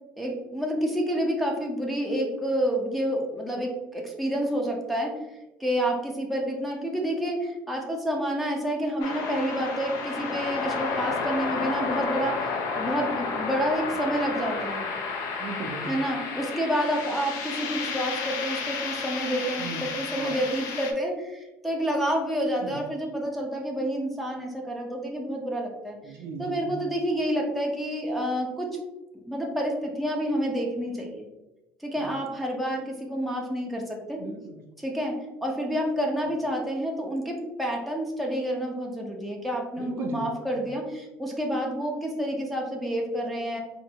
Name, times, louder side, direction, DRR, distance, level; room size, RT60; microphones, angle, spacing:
voice 1, 0.2-5.1 5.6-12.5 12.7-14.9 15.9-26.0 26.4-28.8 29.3-31.3 31.8-34.2 34.8-43.6, equal, ahead, 0 dB, 0.7 m, -29 dB
sound 1, 9.0-20.9, left 4 dB, 70° left, 0.6 m, -31 dB
voice 2, 15.4-16.1 19.6-19.8 20.1-20.3 22.6-22.8 26.0-26.7 32.0-32.1 34.2-34.6 39.8-40.6, right 4 dB, 50° right, 3 dB, 0.5 m, -37 dB
4.3 x 2.5 x 2.8 m, 1.0 s
cardioid pair, 130°, 5 cm